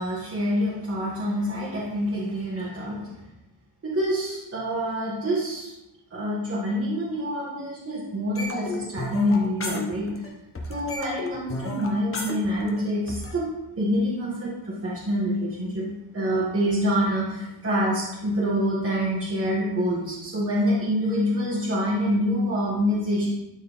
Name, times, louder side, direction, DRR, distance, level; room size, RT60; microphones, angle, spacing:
voice 1, 0.0-3.1 3.8-5.7 6.1-10.1 10.7-13.5 13.8-23.3, equal, 30° right, -9 dB, 1.7 m, -26 dB
sound 1, 8.4-10.3 10.6-13.3, left 2 dB, 30° left, 1.1 m, -32 dB
12.0 x 4.5 x 3.6 m, 0.99 s
wide cardioid pair, 175°, 45 cm